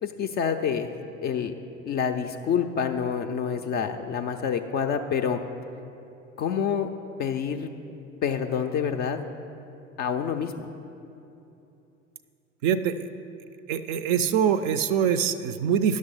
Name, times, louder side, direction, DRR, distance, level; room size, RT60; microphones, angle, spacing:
voice 1, 0.0-0.9 1.2-1.5 1.8-5.4 6.4-6.9 7.2-7.7 8.2-9.2 10.0-10.7, left 7 dB, 25° left, 6 dB, 0.4 m, -27 dB
voice 2, 12.6-13.1 13.7-16.0, right 8 dB, 45° right, 12 dB, 0.4 m, -24 dB
10.5 x 6.3 x 5.5 m, 2.8 s
figure-of-eight pair, 70°, 39 cm